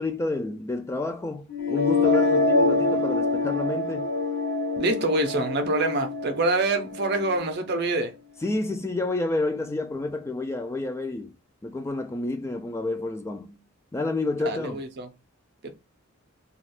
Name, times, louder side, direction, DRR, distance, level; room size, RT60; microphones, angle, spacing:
voice 1, 0.0-4.1 8.4-11.3 11.6-13.6 13.9-14.8, left 2 dB, 15° left, 0.3 m, -29 dB
sound 1, 1.5-7.5, left 2 dB, 55° left, 0.7 m, -25 dB
voice 2, 4.8-8.1 14.4-15.1 15.6-15.7, right 2 dB, 55° right, 0.6 m, -26 dB
2.5 x 2.3 x 3.4 m
head